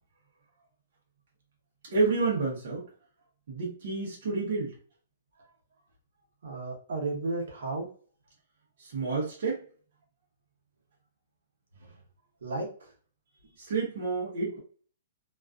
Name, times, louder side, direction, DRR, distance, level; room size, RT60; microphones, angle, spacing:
voice 1, 1.9-2.9 3.5-4.7 8.8-9.6 13.6-14.6, right 4 dB, 45° right, 0.8 m, -29 dB
voice 2, 6.4-7.9 11.7-11.9 12.4-12.9, right 2 dB, 75° right, 0.9 m, -34 dB
2.4 x 2.3 x 2.3 m
hypercardioid pair, 180°, 0 cm